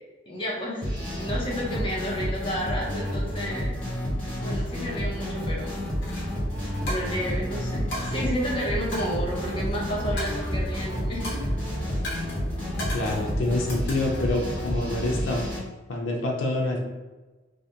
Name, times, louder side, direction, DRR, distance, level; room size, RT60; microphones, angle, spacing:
voice 1, 0.3-3.8 4.4-5.7 6.8-11.4, equal, 25° left, -3 dB, 0.6 m, -31 dB
sound 1, 0.8-15.6, equal, 5° left, 0.9 m, -30 dB
sound 2, 5.9-13.8, equal, 80° right, 0.6 m, -38 dB
Coin (dropping), 6.0-6.2 6.9-7.4 7.9-8.1 8.9-9.8 10.2-10.8 11.2-11.6 12.0-12.4 12.8-13.2 13.7-14.3, left 1 dB, 55° left, 0.9 m, -36 dB
voice 2, 12.9-15.5 15.9-16.8, left 2 dB, 85° left, -1 dB, 0.4 m, -27 dB
2.4 x 2.1 x 2.7 m, 1.2 s
head